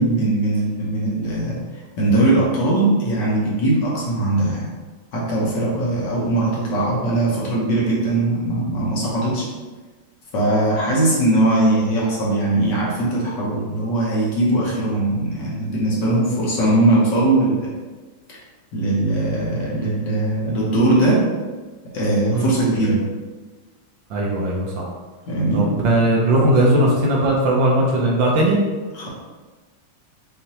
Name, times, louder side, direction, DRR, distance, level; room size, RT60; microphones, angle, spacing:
voice 1, 0.0-1.6 2.0-4.7 5.1-9.5 10.3-17.7 18.3-18.4 18.7-21.2 21.9-23.0 25.3-25.7 28.9-29.1, right 2 dB, 60° left, -5 dB, 1.6 m, -20 dB
voice 2, 24.1-24.9 25.5-28.6, right 1 dB, 70° right, -2 dB, 1.4 m, -18 dB
5.7 x 3.2 x 2.9 m, 1.3 s
omnidirectional pair, 2.3 m